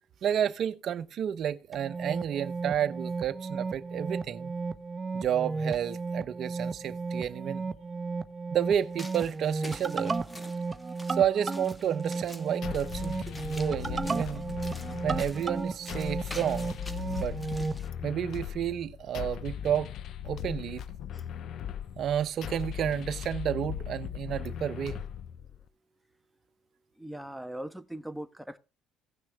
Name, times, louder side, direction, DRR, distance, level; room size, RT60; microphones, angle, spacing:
voice 1, 0.2-4.5 5.1-7.7 8.5-10.1 11.1-14.5 15.0-16.8 17.0-17.4 18.0-19.9 20.2-20.8 22.0-25.0, right 9 dB, 60° right, 1.0 m, -31 dB
sound 1, 1.7-17.8, right 4 dB, 25° right, 1.0 m, -34 dB
sound 2, 8.7-17.9, left 1 dB, 15° left, 1.7 m, -48 dB
sound 3, 12.6-25.6, left 10 dB, 65° left, 0.7 m, -38 dB
voice 2, 27.0-28.6, right 1 dB, ahead, 1.2 m, -40 dB
17.0 x 6.2 x 3.5 m
supercardioid pair, 70°, 0 cm